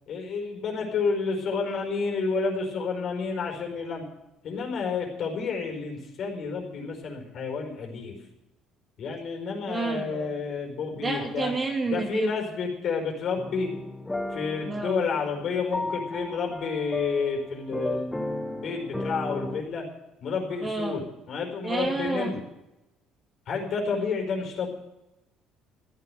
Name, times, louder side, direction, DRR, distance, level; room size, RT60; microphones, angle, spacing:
voice 1, 0.1-4.0 4.4-8.3 9.0-11.5 11.9-13.7 14.3-19.8 20.2-22.4 23.5-24.7, left 5 dB, 55° left, 2 dB, 4.8 m, -30 dB
voice 2, 9.6-10.3 10.9-12.3 14.6-15.0 20.6-21.0 21.6-22.3, right 3 dB, 25° right, 2 dB, 2.7 m, -29 dB
sound 1, 13.4-19.6, left 2 dB, 10° left, 1.3 m, -34 dB
14.5 x 9.7 x 7.9 m, 0.95 s
cardioid pair, 100°, 0 cm